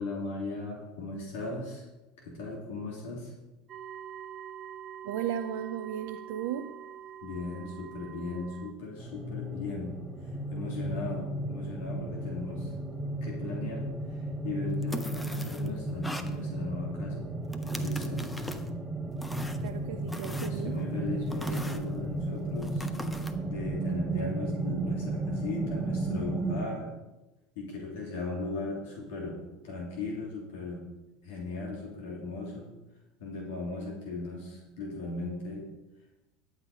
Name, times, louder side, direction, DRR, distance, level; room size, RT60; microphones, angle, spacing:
voice 1, 0.0-1.8 2.2-3.3 7.2-10.0 10.5-12.7 13.2-17.3 17.8-18.2 20.4-22.9 23.4-26.9 27.5-29.4 29.6-30.8 31.2-32.7 33.2-35.7, left 3 dB, 70° left, -2 dB, 3.1 m, -37 dB
sound 1, 3.7-8.7, right 9 dB, 40° right, 0.7 m, -45 dB
voice 2, 5.0-6.7 19.6-20.8, right 10 dB, 70° right, 7 dB, 0.6 m, -35 dB
sound 2, 9.0-26.7, right 2 dB, 15° right, 1.5 m, -34 dB
sound 3, 14.8-15.7 16.0-16.3 17.5-18.7 19.2-19.7 20.1-20.9 21.3-21.8 22.6-23.3, left 1 dB, 10° left, 1.1 m, -40 dB
11.5 x 8.2 x 5.0 m, 1.0 s
hypercardioid pair, 85°, 0 cm